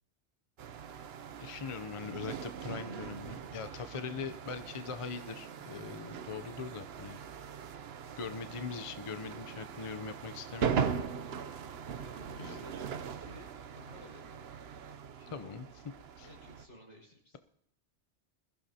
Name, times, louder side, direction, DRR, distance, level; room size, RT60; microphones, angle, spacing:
sound 1, 0.6-16.7, right 7 dB, 65° right, 0.9 m, -40 dB
voice 1, 1.4-7.2 8.2-10.8 12.4-12.6 15.3-15.7 16.2-16.3, left 5 dB, 35° left, 10 dB, 0.6 m, -41 dB
voice 2, 11.9-13.5 13.7-14.5 15.2-15.6 16.2-17.4, left 1 dB, 85° left, -1 dB, 5.5 m, -54 dB
21.5 x 15.0 x 2.8 m, 0.74 s
omnidirectional pair, 1.2 m